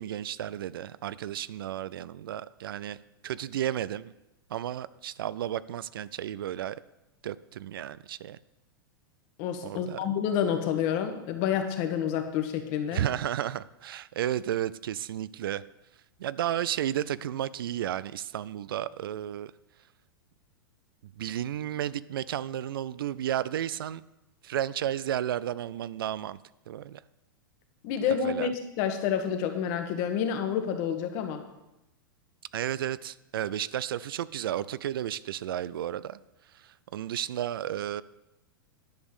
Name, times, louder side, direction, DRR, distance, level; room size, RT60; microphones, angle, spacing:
voice 1, 0.0-3.0 3.2-4.1 4.5-6.8 7.2-8.4 9.6-10.0 12.9-15.6 16.2-19.5 21.2-24.0 24.4-26.4 26.7-27.0 28.2-28.5 32.5-36.2 36.5-38.0, right 11 dB, 75° right, 18 dB, 0.4 m, -33 dB
voice 2, 9.4-13.0 27.8-28.5 28.8-31.4, left 8 dB, 50° left, 6 dB, 1.5 m, -29 dB
10.5 x 5.3 x 6.3 m, 0.92 s
hypercardioid pair, 115°, 12 cm